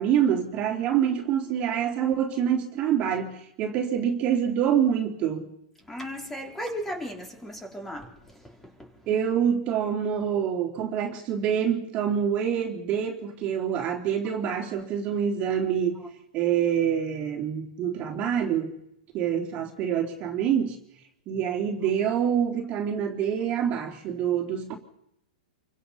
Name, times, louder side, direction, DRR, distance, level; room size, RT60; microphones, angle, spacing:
voice 1, 0.0-5.5 9.1-16.0 16.3-18.7 19.1-20.8 21.3-24.7, right 8 dB, 30° right, 3.4 m, -26 dB
voice 2, 5.8-9.0, equal, 5° left, 3.8 m, -36 dB
28.0 x 24.5 x 5.7 m
hypercardioid pair, 150°, 4 cm